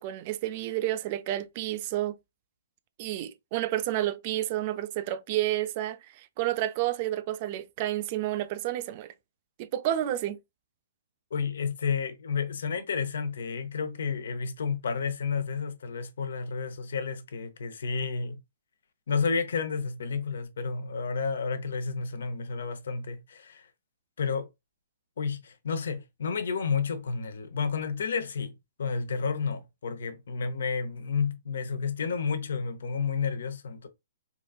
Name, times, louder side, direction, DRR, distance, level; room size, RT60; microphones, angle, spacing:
voice 1, 0.0-2.2 3.0-9.1 9.6-10.4, right 13 dB, 40° right, 0.3 m, -30 dB
voice 2, 11.3-18.4 19.1-23.7 24.2-24.5 25.2-33.9, left 5 dB, 70° left, 0.7 m, -31 dB
3.8 x 2.5 x 2.3 m
hypercardioid pair, 140°, 0 cm